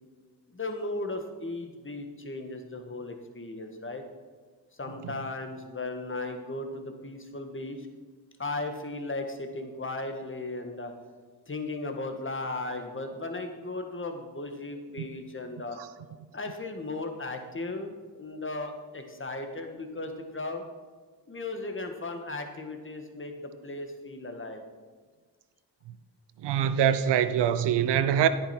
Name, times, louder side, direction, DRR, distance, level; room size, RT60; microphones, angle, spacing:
voice 1, 0.5-4.0 4.7-7.9 8.4-10.9 11.5-15.8 16.3-20.7 21.3-24.6, left 2 dB, 30° left, 1.6 m, -36 dB
voice 2, 26.4-28.3, right 9 dB, 90° right, 0.6 m, -23 dB
10.0 x 8.8 x 4.4 m
cardioid pair, 50°, 40 cm